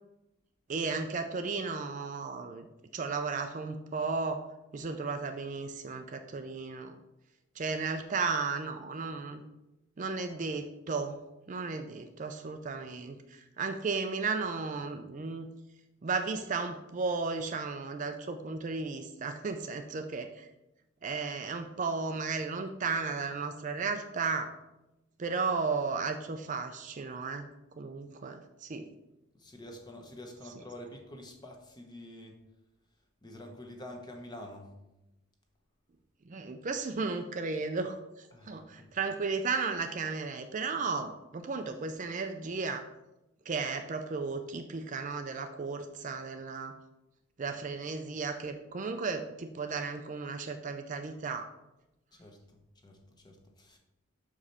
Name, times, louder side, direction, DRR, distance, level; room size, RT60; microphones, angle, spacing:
voice 1, 0.7-2.7 2.9-4.5 4.7-7.0 7.6-9.4 10.0-11.2 11.5-15.5 16.0-20.5 21.0-24.5 25.2-27.5 27.8-28.9 36.2-42.8 43.5-46.7 47.4-51.5, right 4 dB, 35° right, 7 dB, 0.4 m, -34 dB
voice 2, 29.3-32.4 33.2-34.7 38.3-38.9 52.1-53.8, left 1 dB, 20° left, 2 dB, 0.9 m, -47 dB
6.5 x 4.9 x 4.2 m, 0.94 s
head